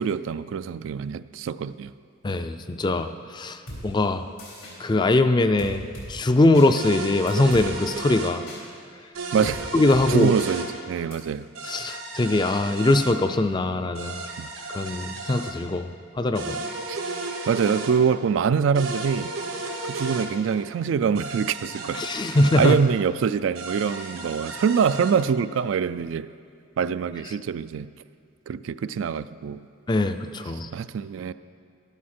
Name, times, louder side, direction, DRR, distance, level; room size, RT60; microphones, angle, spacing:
voice 1, 0.0-1.9 9.3-9.7 10.1-11.5 14.4-14.5 16.9-17.0 17.5-19.3 19.9-22.1 22.6-26.3 26.8-27.9 28.5-29.7 30.7-31.3, right 6 dB, 70° right, 0.3 m, -24 dB
voice 2, 2.2-3.6 3.8-4.2 4.8-8.4 9.7-10.3 11.6-14.3 14.7-15.9 16.2-16.6 21.9-22.8 29.9-30.7, left 2 dB, 20° left, 0.4 m, -22 dB
sound 1, 3.7-3.8 4.4-4.7 5.6-6.1 6.5-6.7 7.3-7.7 8.5-8.6 9.4-9.6 9.9-10.0 10.4-10.5 11.1-11.2, left 1 dB, 90° left, 3.8 m, -38 dB
sound 2, 6.8-8.4 9.2-10.7 11.6-13.2 14.0-15.5 16.4-17.9 18.8-20.3 21.2-22.8 23.6-25.1, right 3 dB, 85° right, 1.4 m, -34 dB
12.0 x 12.0 x 4.3 m
head